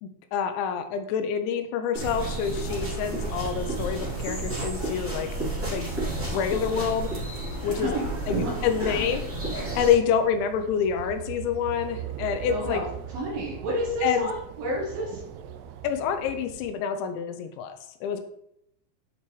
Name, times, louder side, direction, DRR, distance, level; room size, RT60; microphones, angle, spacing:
voice 1, 0.0-5.3 5.7-5.9 6.3-7.1 7.6-7.9 8.3-8.4 8.6-9.2 9.5-12.8 14.0-14.3 15.8-18.2, left 7 dB, 85° left, 8 dB, 2.8 m, -27 dB
sound 1, 1.9-9.9, right 2 dB, 20° right, 0.3 m, -31 dB
voice 2, 7.8-8.5 12.5-15.2, right 1 dB, 65° right, -3 dB, 2.5 m, -30 dB
sound 2, 8.5-16.7, right 10 dB, 90° right, 2.3 m, -41 dB
9.5 x 4.5 x 3.1 m, 0.77 s
omnidirectional pair, 5.3 m